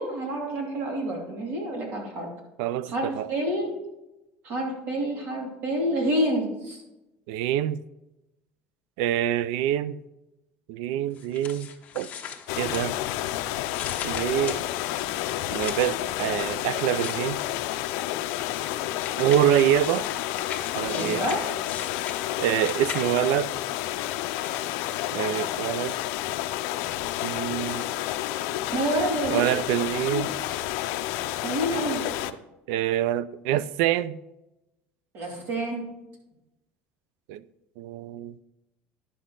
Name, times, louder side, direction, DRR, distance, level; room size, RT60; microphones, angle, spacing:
voice 1, 0.0-2.3 2.9-3.8 4.4-6.8 20.9-21.4 28.7-29.5 29.9-30.2 31.4-32.0 35.1-35.9, right 1 dB, 50° right, 2.5 m, -28 dB
voice 2, 2.6-3.3 7.3-7.8 9.0-10.0 10.7-11.7 11.9-12.1 12.6-12.9 14.0-14.7 15.5-17.4 19.2-20.1 20.7-21.2 22.4-23.5 25.1-25.9 27.2-27.9 29.3-30.3 32.7-34.2 37.3-37.4 37.8-38.3, right 12 dB, 85° right, 0.4 m, -25 dB
sound 1, 11.1-13.3 13.6-16.0 16.7-17.8 18.3-23.3 24.0-24.7, left 8 dB, 35° left, 1.0 m, -40 dB
sound 2, 12.5-32.3, left 14 dB, 80° left, 0.5 m, -30 dB
10.5 x 6.3 x 3.8 m
cardioid pair, 160°, 4 cm